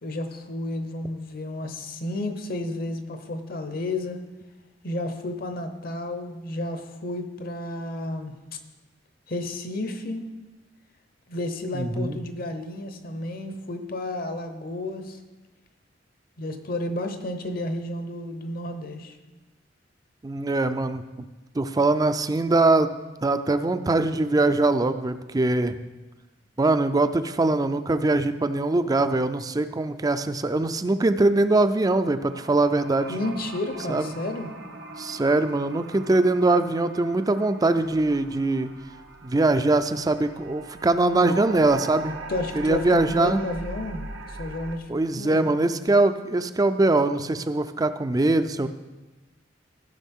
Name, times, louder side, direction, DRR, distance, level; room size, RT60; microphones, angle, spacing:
voice 1, 0.0-4.2 4.8-8.6 9.3-10.3 11.3-15.2 16.4-19.2 33.1-34.5 42.3-44.1 44.4-44.9 45.2-45.5, left 1 dB, 50° left, 7 dB, 0.9 m, -31 dB
voice 2, 11.7-12.2 20.2-21.3 21.5-23.0 23.2-25.8 26.6-33.1 33.9-34.2 35.0-38.7 39.2-42.1 42.5-43.4 44.9-48.7, right 2 dB, 20° right, 11 dB, 0.4 m, -22 dB
sound 1, 32.3-44.8, right 2 dB, 85° right, 0.9 m, -40 dB
15.5 x 6.2 x 3.6 m, 1.2 s
head